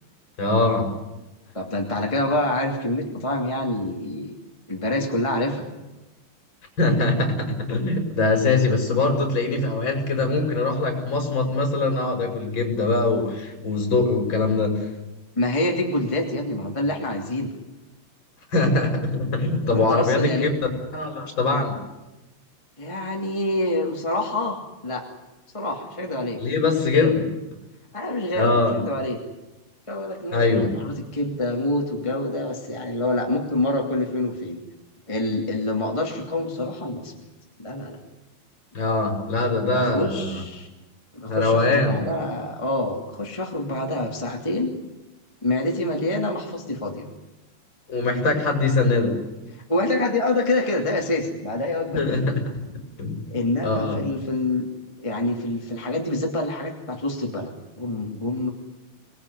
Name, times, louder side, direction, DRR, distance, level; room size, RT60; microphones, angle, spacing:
voice 1, 0.4-0.9 6.8-14.9 18.5-20.5 20.9-21.7 26.4-27.2 28.3-28.8 30.3-30.7 38.7-40.4 41.3-42.0 47.9-49.2 51.9-52.4 53.0-53.2 53.6-54.0, left 3 dB, 30° left, 4 dB, 5.8 m, -22 dB
voice 2, 1.5-4.3 4.7-5.7 15.4-17.5 19.6-20.5 22.8-25.0 25.5-26.4 26.7-27.2 27.9-29.2 29.9-34.6 35.1-37.1 37.6-38.0 39.7-40.7 41.1-44.7 45.4-47.1 49.7-52.3 53.3-54.7 55.0-58.5, left 2 dB, 10° left, 0 dB, 1.7 m, -26 dB
24.5 x 20.0 x 9.9 m, 1.0 s
omnidirectional pair, 4.8 m